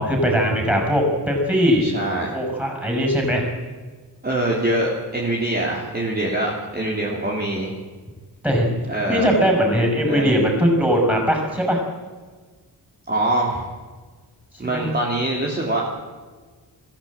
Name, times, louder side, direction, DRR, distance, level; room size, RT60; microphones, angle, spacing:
voice 1, 0.0-1.9 2.3-3.5 8.4-8.7 9.1-11.8 14.7-14.9, equal, 5° right, 1 dB, 6.7 m, -20 dB
voice 2, 1.8-2.3 4.2-7.7 8.9-9.3 10.0-10.4 13.1-13.7 14.6-15.9, right 1 dB, 25° right, -3 dB, 3.5 m, -24 dB
23.0 x 15.5 x 8.9 m, 1.4 s
wide cardioid pair, 180°, 40 cm